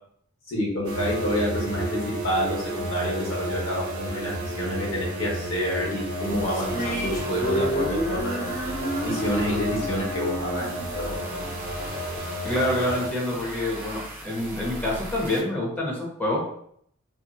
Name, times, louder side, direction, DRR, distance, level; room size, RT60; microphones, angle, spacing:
voice 1, 0.5-8.4 9.0-11.2, equal, 65° left, -4 dB, 1.0 m, -28 dB
sound 1, 0.8-13.1, right 1 dB, 75° right, 0.5 m, -32 dB
sound 2, 6.0-15.4, right 1 dB, 10° right, 0.3 m, -38 dB
sound 3, 6.5-11.9, equal, 40° left, 0.9 m, -31 dB
voice 2, 12.4-16.4, left 1 dB, 10° left, -5 dB, 0.8 m, -27 dB
2.7 x 2.5 x 2.3 m, 0.67 s
head